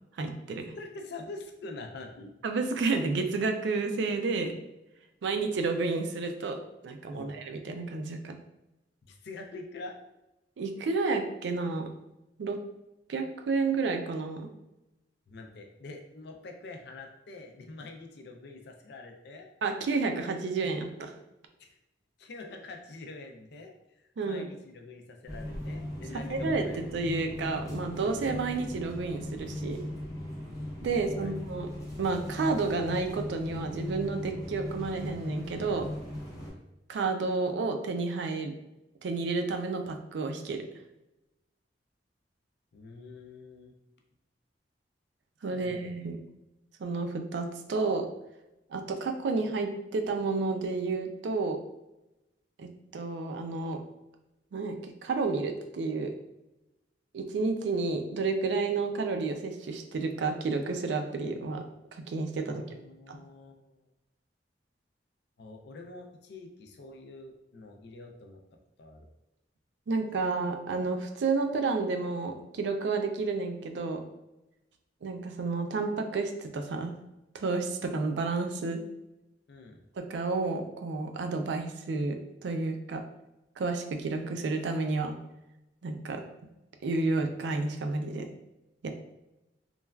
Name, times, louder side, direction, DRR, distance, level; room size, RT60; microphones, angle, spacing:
voice 1, 0.2-0.6 2.4-4.5 5.2-8.4 10.6-11.9 12.4-12.6 13.1-14.5 19.6-21.1 24.2-24.4 26.1-29.8 30.8-31.7 32.0-35.9 36.9-38.5 39.0-40.6 45.4-46.2 46.8-48.1 48.7-51.6 52.6-53.8 54.5-56.1 57.1-61.6 61.9-62.8 63.1-63.2 69.9-74.0 75.0-77.0 77.3-78.8 80.0-83.0 83.6-85.2 85.8-86.2 86.8-88.3 88.8-88.9, right 3 dB, 70° right, 5 dB, 0.4 m, -31 dB
voice 2, 0.8-2.3 7.1-7.4 9.0-10.0 15.3-19.5 21.6-21.8 22.2-26.8 30.8-31.3 36.4-36.6 42.7-43.7 45.5-46.0 62.4-63.9 65.4-68.4 68.8-69.1 79.5-79.8, left 3 dB, 65° left, 3 dB, 0.4 m, -45 dB
sound 1, 25.3-36.5, left 1 dB, 20° left, 0.7 m, -38 dB
3.2 x 2.3 x 2.2 m, 0.92 s
head